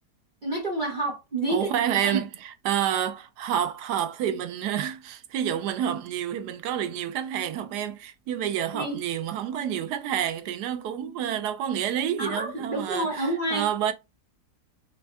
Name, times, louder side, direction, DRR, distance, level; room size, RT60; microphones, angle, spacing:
voice 1, 0.4-1.7 2.0-2.2 8.7-9.0 12.2-13.7, right 2 dB, 35° right, 0.9 m, -28 dB
voice 2, 1.5-13.9, right 10 dB, 80° right, 1.2 m, -29 dB
5.3 x 3.2 x 2.3 m
omnidirectional pair, 1.8 m